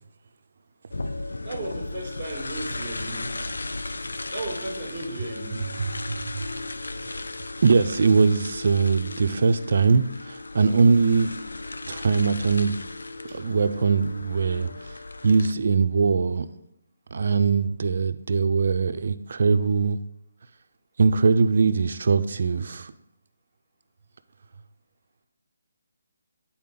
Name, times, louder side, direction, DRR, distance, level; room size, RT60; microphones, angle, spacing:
sound 1, 0.9-15.5, left 2 dB, 85° left, 0.4 m, -36 dB
voice 1, 1.4-3.5 4.3-5.8 13.3-13.4, right 2 dB, 10° right, -8 dB, 1.6 m, -35 dB
voice 2, 5.7-6.5 7.6-11.3 11.9-12.8 13.3-14.7 15.2-16.5 17.1-20.0 21.0-22.9, right 5 dB, 55° right, 9 dB, 0.5 m, -21 dB
9.4 x 4.2 x 3.8 m, 0.83 s
hypercardioid pair, 160°, 0 cm